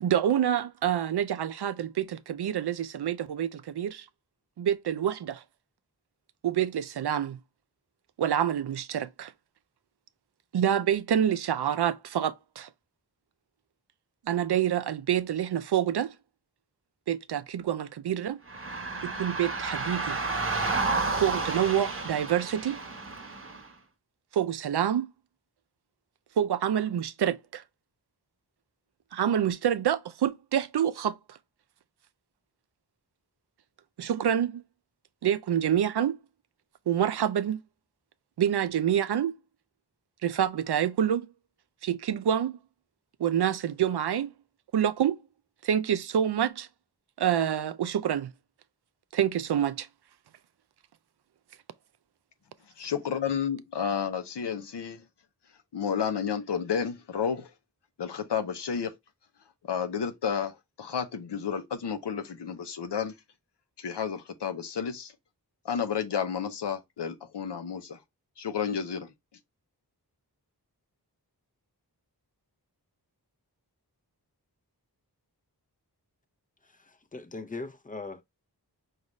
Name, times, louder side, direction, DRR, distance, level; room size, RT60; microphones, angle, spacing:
voice 1, 0.0-4.1 4.6-5.4 6.4-7.4 8.2-9.3 10.5-12.7 14.3-16.1 17.1-18.4 19.0-20.2 21.2-22.8 24.3-25.1 26.4-27.6 29.1-31.2 34.0-34.6 35.2-36.2 36.9-37.6 38.4-39.3 40.2-41.3 41.8-42.6 43.2-44.3 44.7-45.2 45.6-46.7 47.2-48.3 49.1-49.9, right 9 dB, 75° right, 0.5 m, -27 dB
sound 1, 18.5-23.7, right 3 dB, 35° right, 1.0 m, -31 dB
voice 2, 52.8-55.0 55.7-57.5 58.0-58.9 59.6-63.1 63.8-65.1 65.6-68.0 68.4-69.1, left 7 dB, 90° left, 0.7 m, -31 dB
voice 3, 76.6-78.2, left 3 dB, 20° left, 0.5 m, -40 dB
5.2 x 2.4 x 3.0 m
wide cardioid pair, 75°, 40 cm